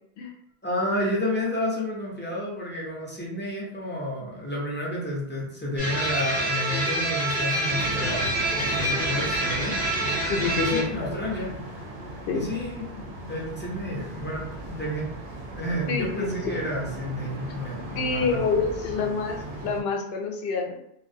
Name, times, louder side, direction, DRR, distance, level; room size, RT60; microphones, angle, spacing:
voice 1, 0.6-8.2 8.5-9.8 10.6-11.5 12.3-15.1 15.5-18.4, left 1 dB, 15° left, -4 dB, 0.4 m, -31 dB
sound 1, 5.8-10.8, right 1 dB, 10° right, 0.8 m, -26 dB
sound 2, 7.7-19.8, right 1 dB, 60° right, 0.6 m, -37 dB
voice 2, 10.3-11.2 12.3-12.5 15.9-16.6 17.9-20.8, left 4 dB, 75° left, 2 dB, 0.8 m, -27 dB
2.4 x 2.0 x 2.6 m, 0.76 s
omnidirectional pair, 1.0 m